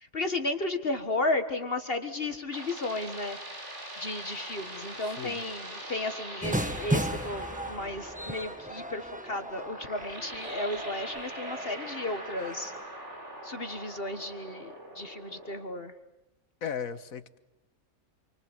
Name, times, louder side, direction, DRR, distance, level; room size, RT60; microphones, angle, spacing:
voice 1, 0.1-3.4 4.0-12.7 13.4-15.9, left 2 dB, 45° left, 8 dB, 1.8 m, -34 dB
sound 1, 2.0-15.6, right 1 dB, 55° right, 4.6 m, -43 dB
voice 2, 5.1-5.4 16.6-17.4, left 7 dB, 75° left, 13 dB, 1.7 m, -36 dB
sound 2, 6.4-12.8, right 1 dB, 5° right, 1.2 m, -36 dB
28.0 x 24.5 x 8.1 m, 0.92 s
omnidirectional pair, 1.5 m